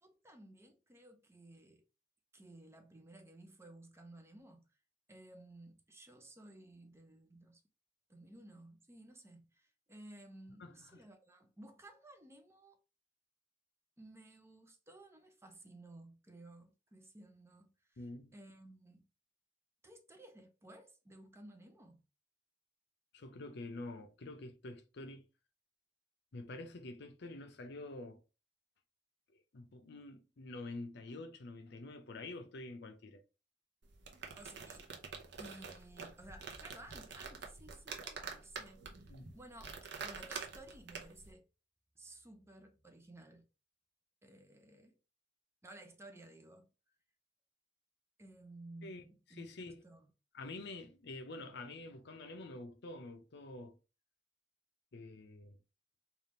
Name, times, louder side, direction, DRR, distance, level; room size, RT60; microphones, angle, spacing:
voice 1, 0.0-1.8 2.3-4.6 5.1-7.6 8.1-12.8 14.0-18.1 18.3-19.1 19.8-22.0 34.4-34.9 35.4-41.5 42.0-43.5 44.2-45.0 45.6-46.7 48.2-50.1, right 1 dB, 15° right, 0.6 m, -56 dB
voice 2, 10.6-11.0 18.0-18.3 23.1-25.3 26.3-28.2 29.3-33.2 39.1-39.3 48.8-49.0 49.3-49.8 50.3-53.8 54.9-55.6, left 2 dB, 65° left, 0.6 m, -47 dB
sound 1, 33.8-41.3, right 5 dB, 70° right, 0.8 m, -47 dB
3.5 x 2.4 x 4.2 m
head